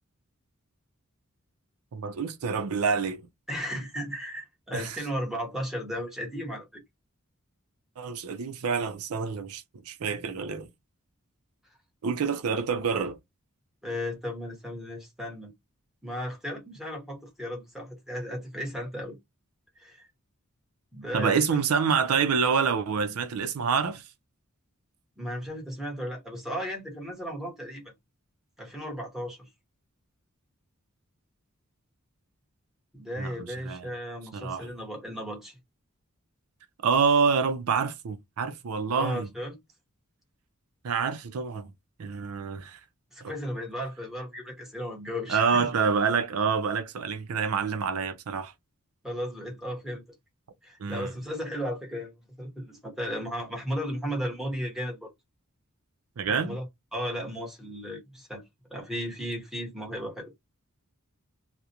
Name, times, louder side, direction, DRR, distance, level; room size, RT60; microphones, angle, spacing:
voice 1, 1.9-3.2 4.7-5.0 8.0-10.7 12.0-13.2 21.1-24.1 33.2-33.9 34.3-34.7 36.8-39.3 40.8-41.7 42.0-42.8 43.2-43.3 45.3-48.5 50.8-51.1 56.2-56.6, right 5 dB, 85° right, 0.5 m, -27 dB
voice 2, 3.5-6.8 13.8-15.5 16.0-19.2 19.8-20.1 20.9-21.4 25.2-27.9 28.6-29.5 32.9-35.6 38.9-39.6 43.1-45.7 49.0-50.0 50.6-52.1 52.4-55.1 56.3-56.6 56.9-58.4 58.7-60.3, equal, ahead, 1.1 m, -35 dB
2.4 x 2.1 x 2.8 m
head